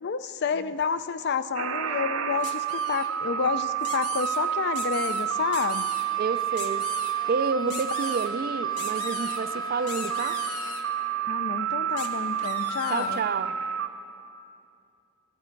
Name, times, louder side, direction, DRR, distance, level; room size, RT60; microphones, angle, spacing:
voice 1, 0.0-5.9 7.6-7.8 11.2-13.2, left 5 dB, 50° left, 13 dB, 0.4 m, -30 dB
sound 1, 1.5-13.9, right 8 dB, 70° right, 0.7 m, -30 dB
sound 2, 2.4-3.1 3.8-4.4 4.7-5.2 5.5-6.0 6.5-7.1 7.7-8.3 8.8-9.4 9.9-10.8 12.0-12.1 12.4-13.2, left 6 dB, 85° left, 1.1 m, -39 dB
Bowed string instrument, 5.0-11.1, left 3 dB, 20° left, 0.8 m, -46 dB
voice 2, 6.2-10.4 12.9-13.6, right 5 dB, 40° right, 11 dB, 0.3 m, -30 dB
18.0 x 12.0 x 4.5 m, 2.6 s
head